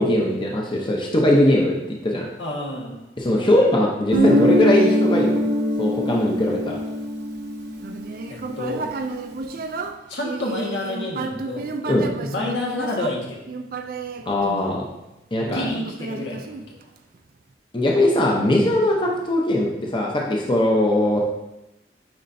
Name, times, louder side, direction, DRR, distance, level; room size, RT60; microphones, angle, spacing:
voice 1, 0.0-1.8 2.0-2.3 3.2-5.4 5.8-6.8 11.9-12.1 14.3-14.8 15.3-15.7 17.7-21.2, left 1 dB, 25° left, -2 dB, 0.7 m, -20 dB
voice 2, 2.4-2.9 8.3-8.8 10.1-11.7 12.2-13.4 15.4-16.8 19.0-19.1, left 2 dB, 80° left, -2 dB, 1.5 m, -29 dB
Guitar, 4.1-8.7, equal, 70° right, 0.9 m, -22 dB
Human voice, 7.8-15.1 15.7-17.2, right 3 dB, 50° right, 0.4 m, -32 dB
9.4 x 4.3 x 2.6 m, 0.95 s
head